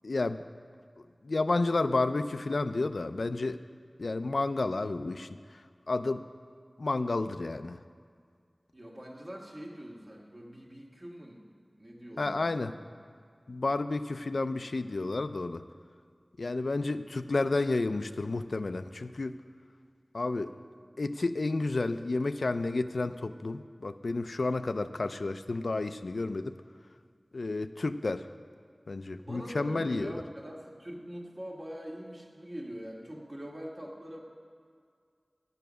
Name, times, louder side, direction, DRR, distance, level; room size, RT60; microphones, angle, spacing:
voice 1, 0.0-0.4 1.2-3.6 4.0-5.3 5.9-6.2 6.8-7.8 12.2-12.7 13.5-15.6 16.4-19.4 20.1-20.5 21.0-26.6 27.3-28.3 28.9-30.1, left 3 dB, 80° left, 10 dB, 0.3 m, -31 dB
voice 2, 8.7-11.4 11.8-12.8 20.4-20.7 29.2-34.2, equal, 35° right, -2 dB, 1.6 m, -43 dB
10.5 x 7.0 x 6.2 m, 2.1 s
wide cardioid pair, 65°, 0 cm